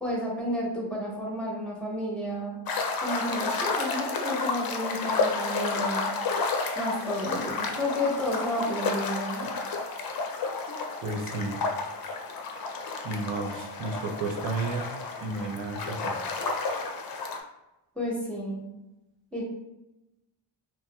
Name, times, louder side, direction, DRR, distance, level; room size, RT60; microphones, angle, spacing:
voice 1, 0.0-2.6 3.0-6.1 6.7-9.5 17.9-18.6 19.3-19.4, left 1 dB, ahead, -4 dB, 1.2 m, -31 dB
sound 1, 2.7-17.4, left 3 dB, 50° left, 0.5 m, -31 dB
voice 2, 11.0-11.6 13.0-14.9 15.2-16.2, right 3 dB, 65° right, 1 dB, 0.7 m, -32 dB
2.9 x 2.7 x 2.2 m, 0.94 s
cardioid pair, 65°, 48 cm